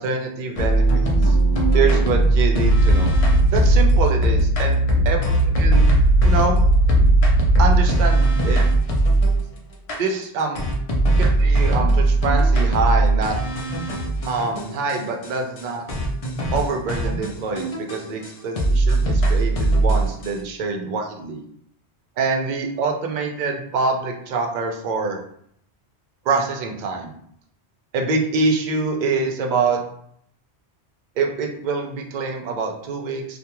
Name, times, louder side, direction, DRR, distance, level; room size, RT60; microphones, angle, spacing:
voice 1, 0.0-1.4 1.7-3.2 3.5-5.9 6.2-6.6 7.6-8.7 10.0-10.6 11.2-13.4 14.3-15.8 16.5-21.4 22.2-25.2 26.2-27.1 27.9-29.8 31.2-33.4, right 4 dB, 60° right, 2 dB, 0.5 m, -25 dB
Slow Dubstep, 0.6-9.4 9.9-10.0 10.5-15.0 15.2-15.3 15.6-15.7 15.9-18.3 18.6-20.3, right 1 dB, 50° left, 0.4 m, -18 dB
2.3 x 2.1 x 2.9 m, 0.67 s
omnidirectional pair, 1.1 m